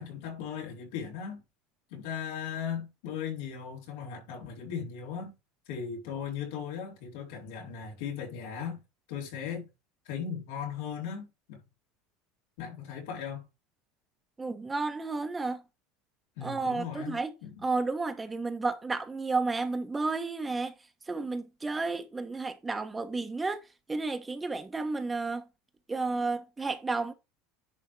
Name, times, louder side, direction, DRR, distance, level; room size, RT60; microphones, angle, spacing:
voice 1, 0.0-1.4 1.9-5.3 5.7-8.8 9.1-9.7 10.1-11.6 12.6-13.5 16.4-17.5, left 7 dB, 80° left, 4.0 m, -37 dB
voice 2, 14.4-15.6 16.4-17.3 17.6-20.7 21.1-23.6 23.9-25.5 25.9-27.1, right 3 dB, 15° right, 1.1 m, -32 dB
10.5 x 3.6 x 4.6 m
supercardioid pair, 135°, 0 cm